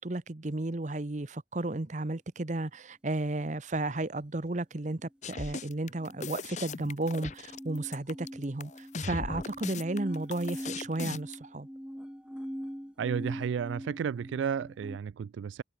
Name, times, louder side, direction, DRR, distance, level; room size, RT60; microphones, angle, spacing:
voice 1, 0.0-11.7, right 2 dB, 40° right, 0.9 m, -33 dB
sound 1, 5.2-11.4, left 4 dB, 40° left, 0.8 m, -38 dB
sound 2, 5.3-15.0, equal, 5° right, 2.2 m, -43 dB
voice 2, 13.0-15.6, right 7 dB, 85° right, 0.3 m, -32 dB
head